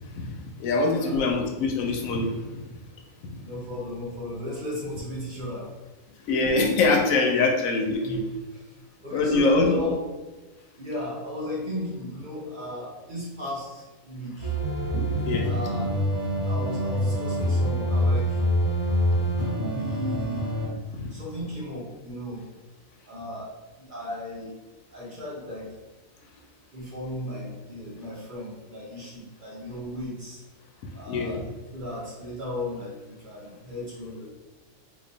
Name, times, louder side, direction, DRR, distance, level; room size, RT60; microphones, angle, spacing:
voice 1, 0.2-2.3 6.3-8.2 9.1-9.8 14.9-15.5 20.9-21.1 31.1-31.4, left 3 dB, 85° left, 2 dB, 1.0 m, -24 dB
voice 2, 0.8-1.2 3.4-5.7 7.4-7.5 8.0-8.2 9.0-10.0 10.8-14.5 15.4-15.9 16.4-18.4 19.7-20.4 21.1-22.4 23.1-23.5 23.9-24.5 24.9-25.7 26.7-30.4 30.9-31.4 31.7-34.3, left 1 dB, 45° right, -5 dB, 0.8 m, -35 dB
sound 1, 14.4-20.7, equal, 25° right, 1.1 m, -25 dB
2.9 x 2.3 x 3.8 m, 1.2 s
omnidirectional pair, 1.4 m